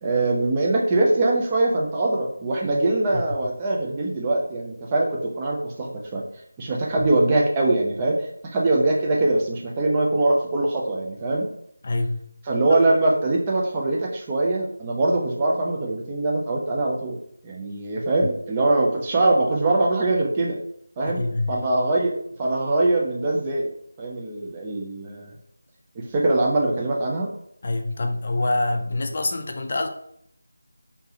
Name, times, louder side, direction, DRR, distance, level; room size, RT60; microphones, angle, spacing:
voice 1, 0.0-6.2 6.6-8.2 8.5-11.5 12.5-17.1 17.4-20.6 21.0-21.2 21.5-23.7 24.0-25.3 26.0-27.3, right 2 dB, 20° right, -2 dB, 0.6 m, -22 dB
voice 2, 11.8-12.3 21.1-21.6 27.6-29.9, left 2 dB, 40° left, 5 dB, 0.4 m, -25 dB
3.5 x 2.8 x 2.9 m, 0.70 s
figure-of-eight pair, 165°, 0 cm